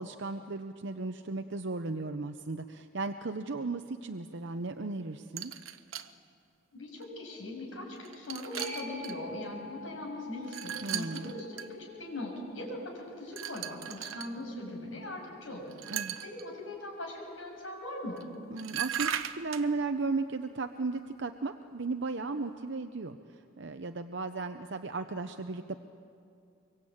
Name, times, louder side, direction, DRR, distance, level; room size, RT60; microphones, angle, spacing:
voice 1, 0.0-5.5 10.8-11.4 15.9-16.2 18.5-25.7, right 3 dB, 60° right, 7 dB, 0.8 m, -35 dB
sound 1, 5.4-6.1 7.0-7.1 7.9-9.2 10.4-11.7 13.3-14.3 15.7-16.4 18.2-18.3 18.6-19.7, right 10 dB, 85° right, 0.9 m, -37 dB
voice 2, 6.7-15.7 16.2-18.3, left 1 dB, 70° left, -1 dB, 7.1 m, -40 dB
sound 2, 8.6-15.7 21.3-21.4, left 2 dB, 55° left, 7.3 m, -49 dB
24.5 x 23.5 x 8.7 m, 2.4 s
head